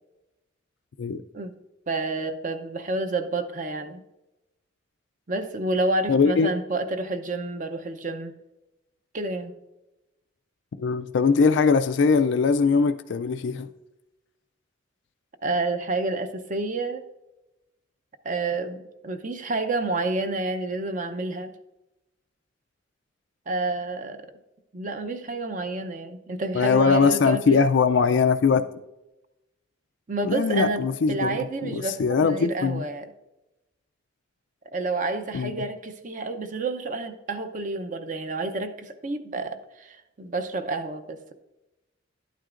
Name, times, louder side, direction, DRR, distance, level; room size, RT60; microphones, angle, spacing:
voice 1, 1.9-4.0 5.3-8.3 9.1-9.6 15.4-17.1 18.2-21.5 23.5-24.3 24.7-27.7 30.1-33.1 34.7-41.3, right 2 dB, 40° right, 0.6 m, -29 dB
voice 2, 6.1-6.5 10.8-13.7 26.5-28.6 30.2-31.4 31.6-32.8 35.3-35.5, left 5 dB, 65° left, 0.4 m, -21 dB
11.5 x 9.1 x 2.5 m
head